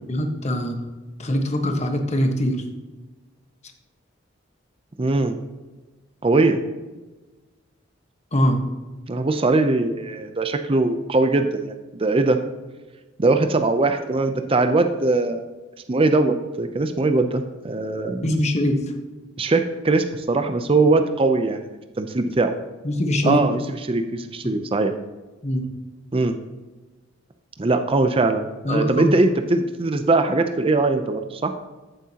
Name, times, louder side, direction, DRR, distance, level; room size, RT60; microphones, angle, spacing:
voice 1, 0.1-0.8 1.2-2.6 8.3-8.6 18.2-18.8 22.8-23.4 25.4-25.7 28.6-29.1, left 1 dB, 35° left, 4 dB, 1.2 m, -22 dB
voice 2, 5.0-5.4 6.2-6.6 9.1-11.7 12.0-12.4 13.2-15.5 15.9-18.3 19.4-21.6 22.0-22.5 23.2-23.6 23.9-24.9 26.1-26.4 27.6-31.5, right 3 dB, 30° right, 7 dB, 0.5 m, -21 dB
14.5 x 7.6 x 2.9 m, 1.2 s
head